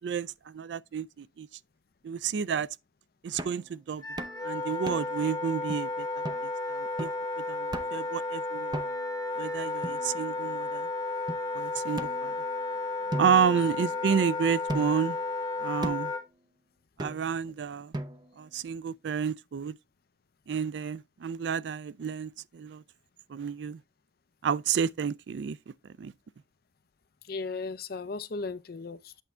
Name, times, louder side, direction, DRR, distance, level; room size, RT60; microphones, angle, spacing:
voice 1, 0.0-1.5 2.0-2.7 3.2-4.0 4.4-6.1 6.4-7.1 7.4-8.8 9.4-10.9 11.5-12.3 13.2-15.2 15.6-16.1 17.0-17.9 18.4-19.8 20.5-22.8 23.3-23.8 24.4-25.6 26.0-26.1, right 7 dB, 80° right, 0.4 m, -30 dB
sound 1, 3.4-3.7 4.2-4.4 4.9-5.2 5.7-5.8 6.2-6.5 7.0-7.3 7.7-8.1 8.7-9.2 9.8-10.5 11.3-11.4 12.0-12.7 13.1-14.2 14.7-15.1 15.8-16.2 17.0-17.4 17.9-18.4, right 1 dB, 25° right, 0.6 m, -38 dB
Wind instrument woodwind instrument, 4.0-16.2, left 3 dB, 20° left, 1.2 m, -33 dB
voice 2, 27.3-29.2, left 4 dB, 55° left, 0.6 m, -36 dB
8.2 x 3.5 x 4.3 m
head